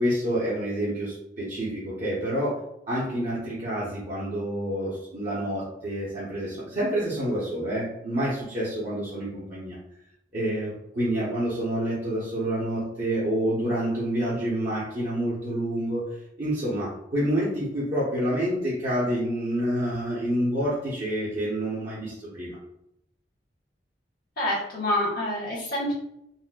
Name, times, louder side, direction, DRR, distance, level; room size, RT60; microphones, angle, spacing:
voice 1, 0.0-2.6 2.9-9.8 10.3-16.0 16.4-22.6, right 1 dB, 45° right, -9 dB, 0.9 m, -28 dB
voice 2, 24.4-25.9, left 1 dB, 70° left, -8 dB, 1.2 m, -27 dB
4.0 x 2.1 x 2.3 m, 0.78 s
head